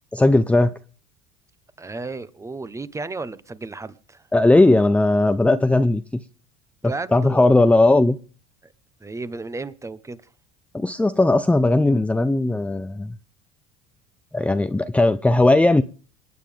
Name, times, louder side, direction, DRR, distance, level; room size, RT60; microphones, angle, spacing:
voice 1, 0.1-0.7 4.3-6.0 7.1-8.2 10.7-13.1 14.3-15.8, left 2 dB, 5° left, 0.6 m, -17 dB
voice 2, 1.8-4.3 6.8-7.5 9.0-10.2, right 3 dB, 15° right, 1.1 m, -33 dB
27.0 x 9.2 x 3.5 m
supercardioid pair, 85°, 19 cm